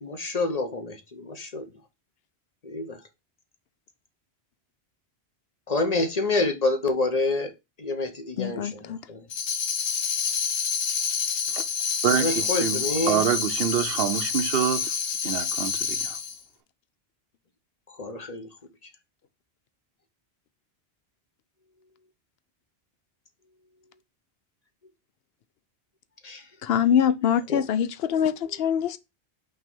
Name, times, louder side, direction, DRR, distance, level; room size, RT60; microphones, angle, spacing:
voice 1, 0.0-1.7 2.6-3.0 5.7-7.5 7.8-9.2 12.2-13.2 18.0-18.5 26.2-26.4 27.5-27.6, left 2 dB, 40° left, 0.8 m, -27 dB
voice 2, 8.4-9.0 26.6-29.0, left 8 dB, 70° left, 0.8 m, -24 dB
Tambourine, 9.3-16.4, left 6 dB, 85° left, 1.1 m, -28 dB
voice 3, 12.0-14.9 15.2-16.2, right 9 dB, 65° right, 0.9 m, -26 dB
5.6 x 3.2 x 5.4 m
omnidirectional pair, 1.1 m